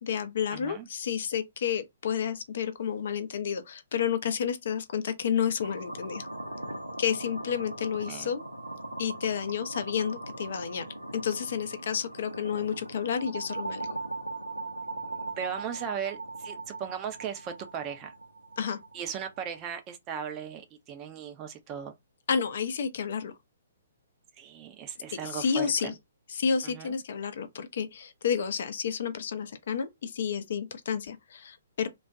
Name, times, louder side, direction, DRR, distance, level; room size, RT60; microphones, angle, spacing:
voice 1, 0.0-6.3 7.0-8.4 9.0-10.9 11.1-13.9 18.6-18.8 22.3-23.3 25.2-25.9 26.3-31.9, left 7 dB, 55° left, 0.4 m, -30 dB
voice 2, 0.5-0.9 8.1-8.3 15.4-18.1 18.9-21.9 24.4-25.9 26.6-27.0, right 8 dB, 25° right, 0.5 m, -37 dB
sound 1, 5.6-19.6, right 2 dB, 90° right, 0.6 m, -40 dB
2.3 x 2.1 x 2.6 m
figure-of-eight pair, 125°, 0 cm